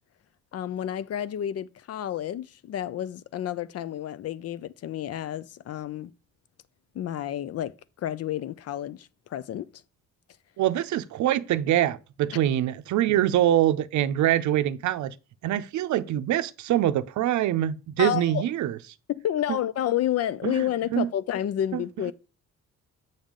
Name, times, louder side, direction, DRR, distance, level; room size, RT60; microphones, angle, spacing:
voice 1, 0.5-6.1 6.9-9.7 18.0-18.4 19.1-22.1, left 11 dB, 55° left, 0.5 m, -30 dB
voice 2, 10.6-15.1 15.4-18.8 20.4-20.6 20.9-21.1 21.7-21.8, right 12 dB, 70° right, 0.6 m, -24 dB
7.1 x 5.3 x 3.8 m
cardioid pair, 90°, 30 cm